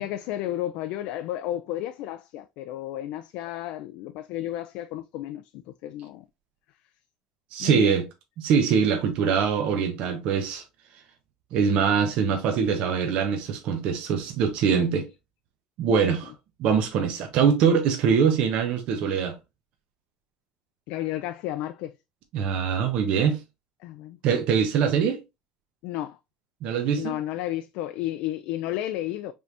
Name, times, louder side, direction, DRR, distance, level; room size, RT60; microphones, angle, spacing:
voice 1, 0.0-6.3 7.6-8.0 14.7-15.0 16.0-16.1 20.9-21.9 23.8-24.2 25.8-26.2 27.0-29.3, left 13 dB, 75° left, 0.4 m, -32 dB
voice 2, 7.5-8.0 8.4-10.6 11.5-15.1 15.8-16.3 16.6-19.4 22.3-23.4 24.2-25.2 26.6-27.2, right 6 dB, 60° right, 1.0 m, -23 dB
5.4 x 3.4 x 2.6 m
cardioid pair, 120°, 2 cm